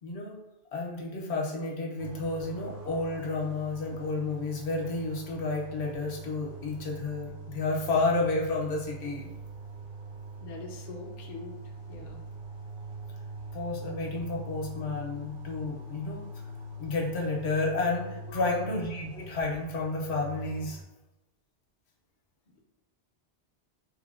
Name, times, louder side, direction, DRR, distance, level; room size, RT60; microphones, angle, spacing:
voice 1, 0.0-0.3 0.7-9.3 13.5-16.3 16.8-20.8, left 3 dB, 75° left, -2 dB, 0.9 m, -31 dB
sound 1, 2.0-20.8, right 2 dB, 55° right, 0.8 m, -43 dB
voice 2, 10.4-11.5 11.9-12.2 18.3-18.7, left 4 dB, 60° left, 0 dB, 0.5 m, -42 dB
3.1 x 2.1 x 2.3 m, 0.95 s
omnidirectional pair, 1.1 m